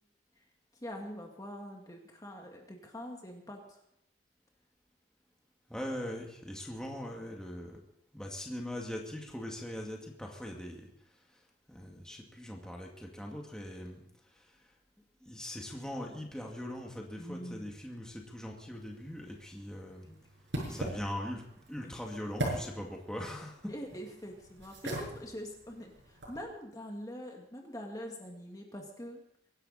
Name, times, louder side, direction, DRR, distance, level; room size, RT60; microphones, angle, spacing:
voice 1, 0.8-3.8 17.2-17.7 20.0-20.2 20.7-20.9 21.8-22.0 23.7-29.2, equal, 20° left, 1 dB, 2.1 m, -44 dB
voice 2, 5.7-7.8 8.1-10.9 11.7-14.0 14.3-14.5 15.2-20.1 20.7-21.4 21.7-23.7, left 1 dB, 5° left, 0 dB, 2.1 m, -41 dB
sound 1, 18.7-26.4, right 1 dB, 90° right, 7.4 m, -41 dB
24.0 x 11.5 x 4.2 m, 0.79 s
head